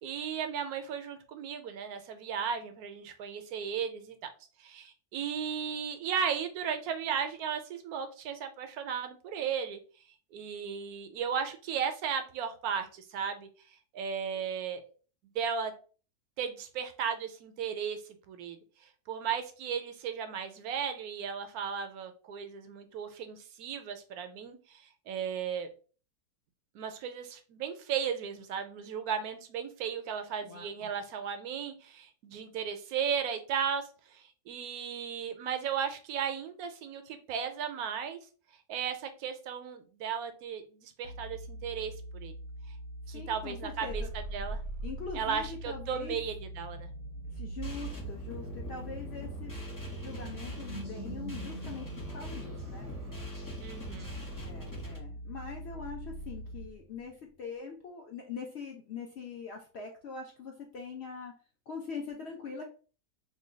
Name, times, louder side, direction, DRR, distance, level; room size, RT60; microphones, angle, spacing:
voice 1, 0.0-4.2 4.6-9.8 10.3-14.9 15.3-15.7 16.4-18.0 18.3-18.6 18.8-25.7 26.7-38.2 38.7-42.3 42.7-42.8 43.1-44.6 45.1-46.9 53.6-54.1, right 7 dB, 75° right, 8 dB, 1.0 m, -35 dB
voice 2, 30.4-30.9 43.1-44.1 44.8-46.2 47.3-49.5 50.0-52.9 54.3-61.3 61.7-62.6, left 5 dB, 65° left, 1 dB, 0.6 m, -42 dB
sound 1, 41.1-56.7, equal, 85° left, 1.2 m, -44 dB
sound 2, 43.8-57.1, right 3 dB, 40° right, 0.5 m, -45 dB
sound 3, 47.6-55.0, equal, 20° left, 0.6 m, -44 dB
3.1 x 2.2 x 3.8 m, 0.38 s
omnidirectional pair, 1.6 m